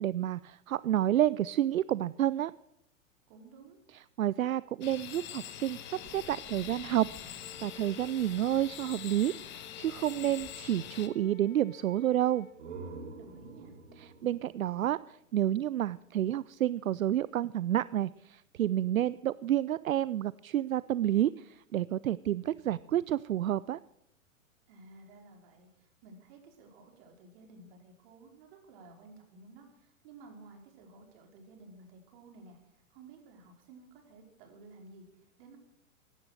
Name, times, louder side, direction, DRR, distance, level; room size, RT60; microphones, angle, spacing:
voice 1, 0.0-2.5 4.2-12.5 14.0-23.8, right 12 dB, 80° right, 19 dB, 0.5 m, -30 dB
voice 2, 3.3-3.8 13.2-13.7 24.7-35.6, right 3 dB, 45° right, 2 dB, 4.9 m, -54 dB
sound 1, 4.8-11.1, left 10 dB, 25° left, 1.4 m, -44 dB
Wind instrument woodwind instrument, 7.4-12.6, left 7 dB, 75° left, 2.2 m, -55 dB
sound 2, 12.3-15.9, right 4 dB, 65° right, 3.3 m, -48 dB
16.5 x 11.5 x 6.4 m, 0.80 s
figure-of-eight pair, 110°, 40 cm